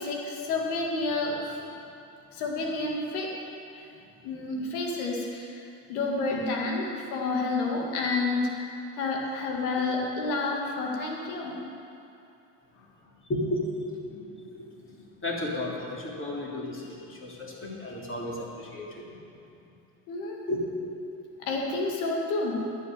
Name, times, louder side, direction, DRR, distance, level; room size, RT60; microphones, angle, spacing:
voice 1, 0.0-1.6 2.3-3.3 3.8-3.9 4.2-8.7 9.0-11.6 20.1-20.4 21.4-22.7, left 3 dB, 80° left, 0 dB, 2.1 m, -30 dB
voice 2, 13.3-14.6 15.2-19.0 20.5-20.9, left 1 dB, 30° left, -4 dB, 3.4 m, -33 dB
11.0 x 6.5 x 9.1 m, 2.8 s
hypercardioid pair, 75°, 42 cm